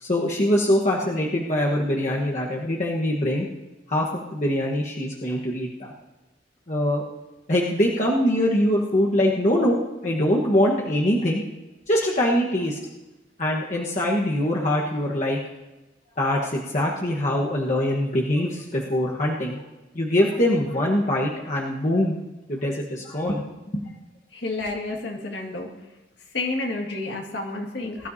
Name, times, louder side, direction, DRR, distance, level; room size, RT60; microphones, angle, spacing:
voice 1, 0.0-3.5 3.9-5.9 6.7-7.0 7.5-9.8 10.0-11.4 11.9-12.8 13.4-15.4 16.2-19.6 19.9-22.2 22.5-23.4, left 1 dB, 40° left, -3 dB, 1.3 m, -23 dB
voice 2, 24.4-25.7 26.3-28.1, left 2 dB, 60° left, 1 dB, 2.0 m, -30 dB
20.5 x 13.0 x 2.8 m, 1.1 s
head